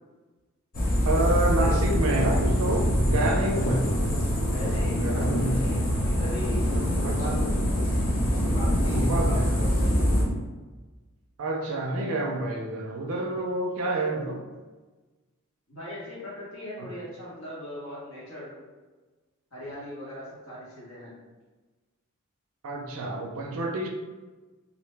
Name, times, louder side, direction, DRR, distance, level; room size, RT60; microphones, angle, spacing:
sound 1, 0.7-10.2, equal, 40° left, 0.6 m, -24 dB
voice 1, 1.1-3.9 4.9-5.6 7.0-7.3 8.9-9.6 11.4-14.4 22.6-23.9, right 2 dB, 70° right, 2 dB, 0.4 m, -28 dB
voice 2, 4.4-7.6 8.4-10.2 15.7-18.6 19.5-21.1, left 1 dB, 60° left, -7 dB, 1.1 m, -39 dB
2.5 x 2.0 x 3.2 m, 1.3 s
head